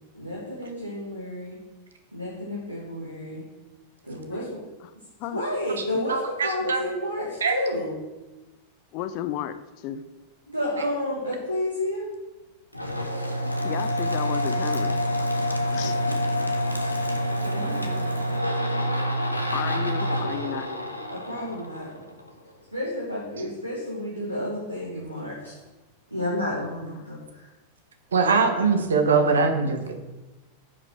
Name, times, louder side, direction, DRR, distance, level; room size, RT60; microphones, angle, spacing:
voice 1, 0.1-1.6 2.1-3.4 4.0-4.6 5.3-8.0 10.5-12.1 17.4-18.2 21.1-21.9 22.7-25.5 26.1-27.2, left 1 dB, 90° right, -6 dB, 1.9 m, -31 dB
voice 2, 5.8-6.8 7.4-7.6 28.1-30.0, right 4 dB, 70° right, 6 dB, 1.0 m, -22 dB
voice 3, 8.9-9.5 9.8-10.0 13.6-14.9 15.7-16.0 19.5-20.7, left 11 dB, 45° left, 11 dB, 0.5 m, -32 dB
sound 1, 12.7-22.3, equal, 85° left, 0.9 m, -27 dB
9.9 x 5.1 x 4.6 m, 1.1 s
figure-of-eight pair, 90°, 0 cm